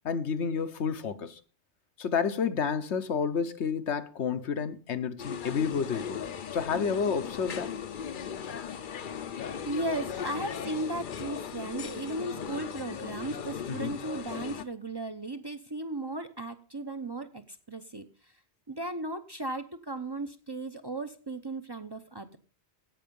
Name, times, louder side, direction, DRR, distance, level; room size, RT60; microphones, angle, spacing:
voice 1, 0.0-1.4 2.0-6.2 6.5-7.8 13.7-14.0, left 6 dB, 80° left, 1.2 m, -30 dB
sound 1, 5.2-14.6, left 7 dB, 55° left, 0.8 m, -38 dB
voice 2, 9.6-18.3 18.7-22.4, right 2 dB, 25° right, 0.7 m, -36 dB
16.5 x 5.5 x 5.3 m
omnidirectional pair, 1.2 m